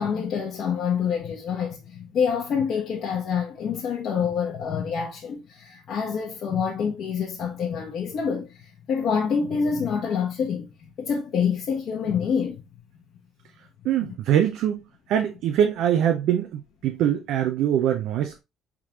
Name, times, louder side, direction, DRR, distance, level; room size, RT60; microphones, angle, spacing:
voice 1, 0.0-12.6, left 6 dB, 60° left, 1.0 m, -27 dB
voice 2, 13.8-14.8 15.1-18.4, right 10 dB, 75° right, 0.6 m, -23 dB
4.9 x 3.6 x 2.9 m
cardioid pair, 120°, 0 cm